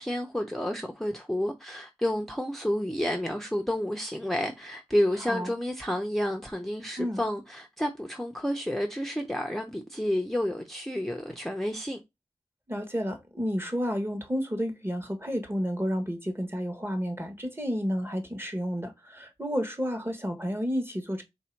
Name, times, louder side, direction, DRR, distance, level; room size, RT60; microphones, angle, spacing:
voice 1, 0.0-12.0, left 1 dB, 5° left, 0.8 m, -30 dB
voice 2, 12.7-21.2, equal, 20° right, 1.2 m, -31 dB
3.3 x 2.7 x 4.5 m
wide cardioid pair, 45°, 12 cm